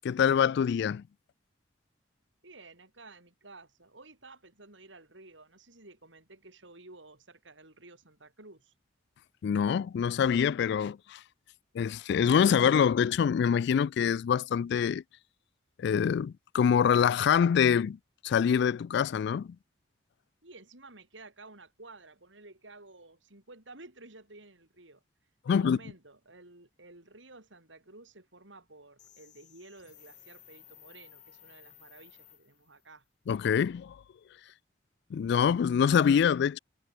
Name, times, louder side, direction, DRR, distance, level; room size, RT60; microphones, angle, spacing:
voice 1, 0.0-1.0 9.4-11.2 11.7-15.0 15.8-18.0 18.2-19.6 25.5-25.8 33.3-34.0 35.1-36.6, left 7 dB, 65° left, 0.3 m, -25 dB
voice 2, 2.4-8.7 20.4-25.0 25.5-33.0, right 2 dB, 75° right, 6.8 m, -53 dB
sound 1, 29.0-32.9, left 12 dB, 40° left, 3.3 m, -56 dB
head